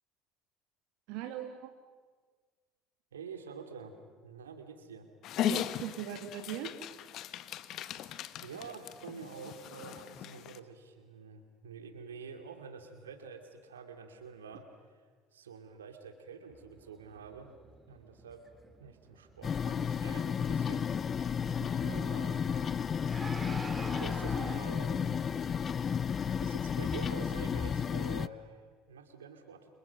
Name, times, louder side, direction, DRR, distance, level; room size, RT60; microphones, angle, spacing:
voice 1, 1.1-1.7 5.5-6.7 21.6-22.0, right 11 dB, 70° right, 5 dB, 2.1 m, -40 dB
voice 2, 3.1-3.9 4.2-5.1 8.4-14.6 15.3-17.5 17.9-18.4 18.8-20.9 21.7-22.9 23.9-25.7 26.4-29.7, right 5 dB, 90° right, 6 dB, 2.7 m, -47 dB
Dog, 5.2-10.6, left 11 dB, 55° left, 1.2 m, -38 dB
sound 1, 16.5-24.6, right 3 dB, 20° right, 3.2 m, -49 dB
sound 2, 19.4-28.3, left 7 dB, 40° left, 0.7 m, -32 dB
30.0 x 27.0 x 6.0 m, 1.5 s
hypercardioid pair, 70°, 0 cm